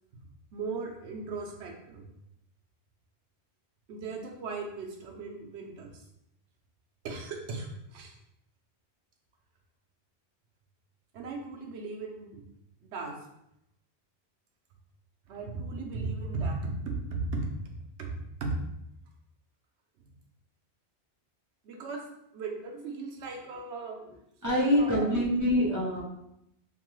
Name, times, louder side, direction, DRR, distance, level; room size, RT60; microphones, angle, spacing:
voice 1, 0.5-2.1 3.9-6.0 7.0-8.1 11.1-12.4 12.8-13.2 15.3-17.7 18.0-18.5 20.0-20.1 21.6-22.1 22.3-24.0 24.5-25.3, right 3 dB, 90° right, 1 dB, 0.9 m, -37 dB
voice 2, 24.4-26.0, left 1 dB, 20° right, -6 dB, 0.6 m, -25 dB
2.9 x 2.2 x 3.0 m, 0.80 s
omnidirectional pair, 1.1 m